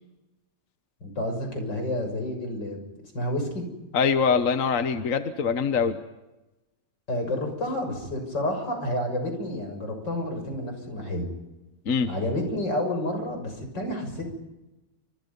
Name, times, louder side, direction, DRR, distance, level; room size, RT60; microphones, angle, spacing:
voice 1, 1.0-2.8 3.1-3.6 7.1-11.3 12.1-14.3, left 1 dB, 80° left, 5 dB, 7.2 m, -30 dB
voice 2, 3.9-6.0 11.9-12.1, left 6 dB, 50° left, 9 dB, 1.5 m, -23 dB
29.5 x 27.0 x 5.5 m, 1.0 s
omnidirectional pair, 1.9 m